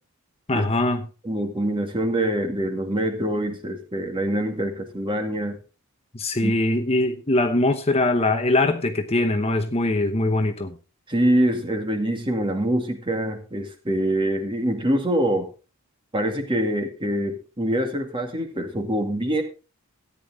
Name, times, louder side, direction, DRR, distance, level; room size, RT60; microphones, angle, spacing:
voice 1, 0.5-1.1 6.1-10.8, left 2 dB, 30° left, 0.9 m, -22 dB
voice 2, 1.2-5.6 6.4-6.5 11.1-15.5 16.1-19.4, right 1 dB, 25° right, 2.2 m, -24 dB
14.0 x 10.0 x 3.6 m
head